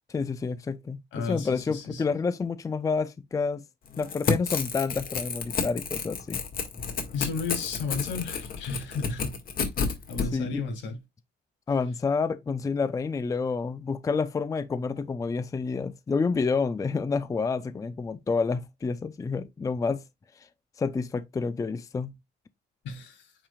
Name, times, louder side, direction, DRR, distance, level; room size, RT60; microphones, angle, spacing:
voice 1, 0.1-3.6 4.0-6.4 10.3-10.6 11.7-20.0 20.8-22.1, left 4 dB, 20° left, 0.4 m, -29 dB
voice 2, 1.1-2.0 7.1-9.4 10.1-11.0 22.8-23.3, left 4 dB, 85° left, 3.0 m, -33 dB
Crackle / Tearing, 3.9-10.3, left 5 dB, 50° left, 1.8 m, -30 dB
8.8 x 5.0 x 2.3 m
cardioid pair, 145°, 18 cm